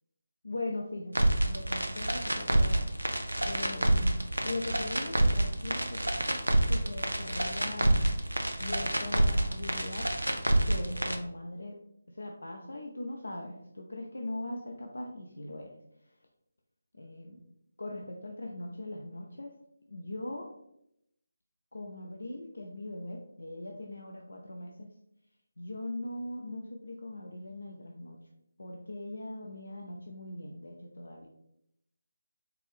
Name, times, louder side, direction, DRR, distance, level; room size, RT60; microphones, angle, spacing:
voice 1, 0.4-2.9 3.4-6.0 6.7-8.0 8.6-10.1 10.7-11.8 12.1-15.7 16.0-16.1 16.9-17.4 17.8-19.5 19.9-20.5 21.7-24.9 25.6-28.2 28.6-31.3, left 2 dB, 70° left, 1 dB, 0.5 m, -40 dB
sound 1, 1.1-11.2, right 1 dB, 85° right, 0.6 m, -28 dB
4.5 x 2.6 x 3.4 m, 0.78 s
figure-of-eight pair, 155°, 0 cm